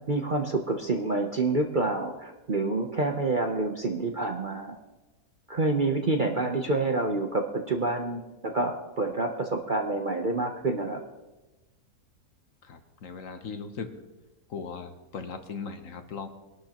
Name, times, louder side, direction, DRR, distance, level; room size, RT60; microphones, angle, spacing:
voice 1, 0.0-4.8 5.5-11.0, right 2 dB, 40° right, 3 dB, 0.8 m, -28 dB
voice 2, 12.6-14.0 14.5-16.3, left 5 dB, 60° left, 7 dB, 1.3 m, -38 dB
22.5 x 12.0 x 3.0 m, 1.1 s
omnidirectional pair, 1.7 m